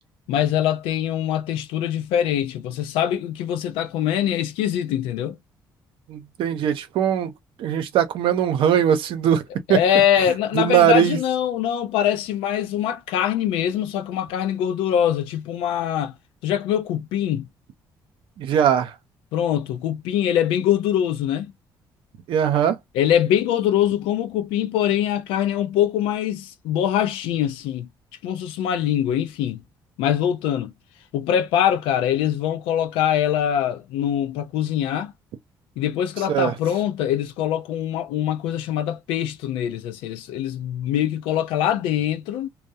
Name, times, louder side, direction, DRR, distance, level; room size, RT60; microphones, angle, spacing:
voice 1, 0.3-5.4 9.7-16.2 16.4-17.5 19.3-21.5 22.9-27.9 28.2-29.6 30.0-30.7 31.1-35.1 35.8-42.5, left 10 dB, 85° left, 0.5 m, -23 dB
voice 2, 6.1-7.3 7.6-9.4 9.7-9.8 10.5-11.2 18.4-18.9 22.3-22.8 36.3-36.5, right 9 dB, 75° right, 0.6 m, -20 dB
2.3 x 2.0 x 2.6 m
supercardioid pair, 65°, 9 cm